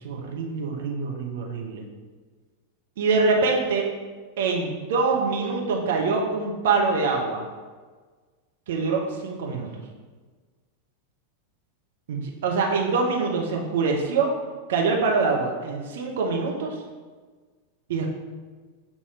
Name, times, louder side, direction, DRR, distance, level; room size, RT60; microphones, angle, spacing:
voice 1, 0.0-1.8 3.0-3.8 4.4-7.4 8.7-9.8 12.1-14.3 14.7-16.8 17.9-18.1, right 4 dB, 55° right, 0 dB, 0.9 m, -24 dB
6.7 x 2.9 x 5.6 m, 1.4 s
figure-of-eight pair, 90°, 0 cm